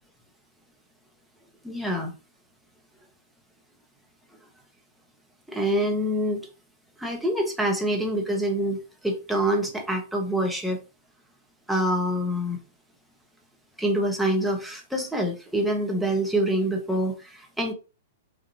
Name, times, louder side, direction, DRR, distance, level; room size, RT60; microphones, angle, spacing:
voice 1, 1.6-2.1 5.5-6.4 7.0-10.8 11.7-12.6 13.8-17.7, right 1 dB, 5° right, 1 dB, 1.0 m, -26 dB
3.9 x 2.5 x 3.0 m, 0.32 s
figure-of-eight pair, 105°, 0 cm